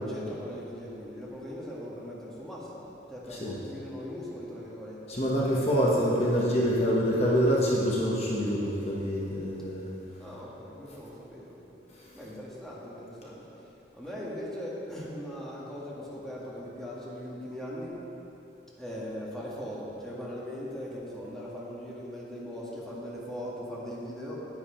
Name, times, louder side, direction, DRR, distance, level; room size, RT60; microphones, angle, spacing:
voice 1, 0.0-5.2 10.2-11.6 12.1-18.0 18.8-24.5, equal, 5° left, -6 dB, 1.6 m, -40 dB
voice 2, 5.1-9.9, equal, 35° left, -5 dB, 1.2 m, -26 dB
10.5 x 9.5 x 4.4 m, 2.9 s
head